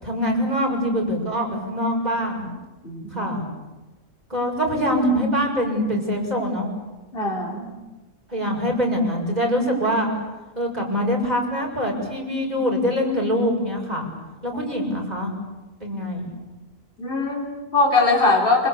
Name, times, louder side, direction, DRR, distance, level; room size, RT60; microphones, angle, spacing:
voice 1, 0.0-2.5 3.1-3.4 4.3-6.7 8.3-10.1 10.6-14.1 14.4-15.3 15.8-16.3, equal, 30° right, 0 dB, 6.8 m, -24 dB
voice 2, 2.8-3.3 7.1-7.7 17.0-18.7, left 3 dB, 45° left, -1 dB, 4.2 m, -21 dB
26.5 x 25.5 x 8.5 m, 1.1 s
omnidirectional pair, 1.4 m